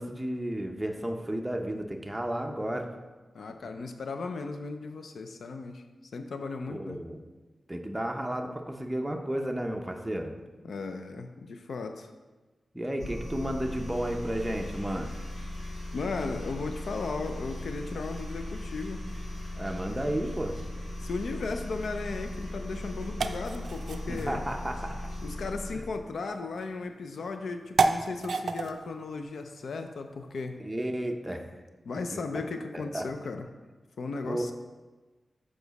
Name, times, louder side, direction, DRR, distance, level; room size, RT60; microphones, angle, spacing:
voice 1, 0.0-2.9 6.7-7.2 7.7-10.3 12.7-15.1 19.6-20.6 24.1-25.0 30.6-31.5 32.1-32.2 32.7-33.1 34.2-34.5, right 1 dB, 10° right, 3 dB, 0.6 m, -32 dB
voice 2, 3.3-5.8 6.1-7.0 10.6-12.1 15.9-19.0 21.0-24.5 25.2-30.6 31.8-33.5 34.0-34.5, left 4 dB, 85° left, 7 dB, 0.4 m, -36 dB
sound 1, 13.0-26.0, left 1 dB, 65° left, 1.5 m, -38 dB
sound 2, 21.9-30.6, right 4 dB, 80° right, 0.3 m, -34 dB
6.9 x 5.0 x 4.0 m, 1.2 s
wide cardioid pair, 120°, 0 cm